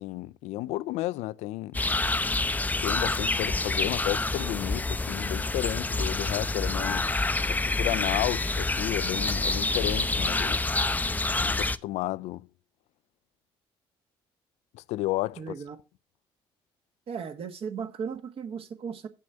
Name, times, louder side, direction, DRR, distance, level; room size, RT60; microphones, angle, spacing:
voice 1, 0.0-1.8 2.8-7.1 7.5-10.6 11.4-12.5 14.7-15.4, left 17 dB, 80° left, 0.4 m, -32 dB
sound 1, 1.7-11.8, left 2 dB, 15° left, 0.5 m, -27 dB
voice 2, 15.4-15.8 17.1-19.1, right 6 dB, 60° right, 1.4 m, -36 dB
7.7 x 6.3 x 5.5 m
supercardioid pair, 75°, 11 cm